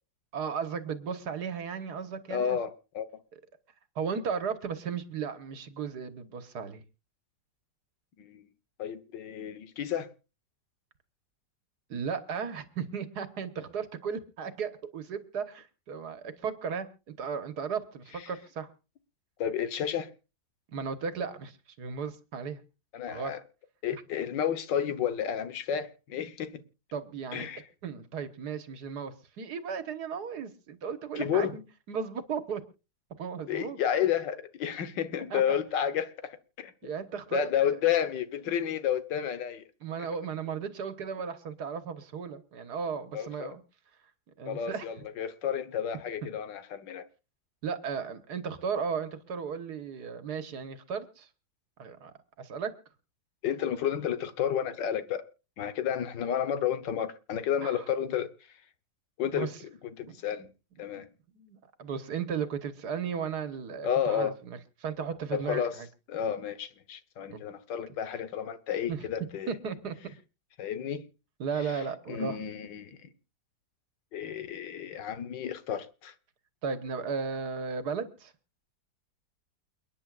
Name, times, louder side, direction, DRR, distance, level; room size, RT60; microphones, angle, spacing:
voice 1, 0.3-2.6 4.0-6.8 11.9-18.7 20.7-22.6 23.1-23.3 26.9-27.5 27.8-31.6 31.9-32.6 33.2-33.8 35.3-35.6 36.8-37.4 39.8-43.6 44.4-44.9 46.2-46.3 47.6-51.3 51.8-52.1 52.4-52.7 57.6-57.8 59.3-59.6 60.1-60.2 61.0-61.1 61.3-65.9 67.3-67.4 68.9-69.1 69.5-70.0 71.4-72.4 76.6-78.3, right 6 dB, 65° right, 1.7 m, -35 dB
voice 2, 2.3-3.1 8.2-8.5 8.8-10.1 19.4-20.1 22.9-23.4 23.8-26.6 27.3-27.6 31.2-31.6 33.5-36.7 37.3-39.6 43.1-43.5 44.5-47.0 53.4-55.3 55.6-58.3 59.2-59.5 60.0-60.5 60.8-61.1 63.8-64.3 65.3-65.8 66.1-69.5 70.6-71.1 71.6-73.0 74.1-76.1, left 9 dB, 85° left, 1.8 m, -31 dB
29.5 x 9.8 x 2.4 m
omnidirectional pair, 1.9 m